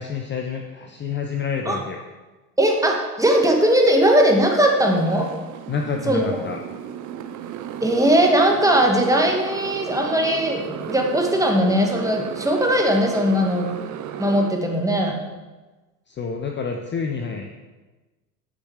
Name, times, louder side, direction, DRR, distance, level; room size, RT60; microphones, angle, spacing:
voice 1, 0.0-2.0 5.7-6.6 16.1-17.6, left 6 dB, 25° left, 4 dB, 0.7 m, -28 dB
voice 2, 2.6-5.3 6.1-6.4 7.8-13.7 14.2-15.1, equal, 5° right, 2 dB, 1.7 m, -19 dB
Motorcycle, 4.8-14.5, right 9 dB, 35° right, 0.8 m, -34 dB
9.6 x 6.3 x 4.9 m, 1.2 s
hypercardioid pair, 80°, 49 cm